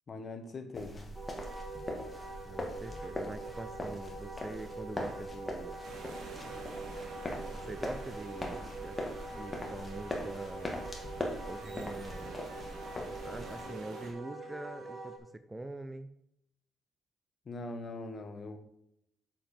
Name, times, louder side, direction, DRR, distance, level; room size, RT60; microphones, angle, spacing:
voice 1, 0.1-1.0 17.4-18.6, left 2 dB, 40° left, 7 dB, 1.5 m, -41 dB
sound 1, 0.7-13.6, left 1 dB, 20° left, 2.1 m, -41 dB
Wind instrument woodwind instrument, 1.1-15.2, right 3 dB, 35° right, 2.4 m, -44 dB
voice 2, 2.5-5.8 7.5-10.8 11.4-12.4 13.2-16.1, right 2 dB, 15° right, 11 dB, 0.6 m, -44 dB
sound 2, 5.8-14.1, right 3 dB, 70° right, 2.4 m, -50 dB
7.5 x 7.4 x 4.4 m, 0.75 s
cardioid pair, 90°, 0 cm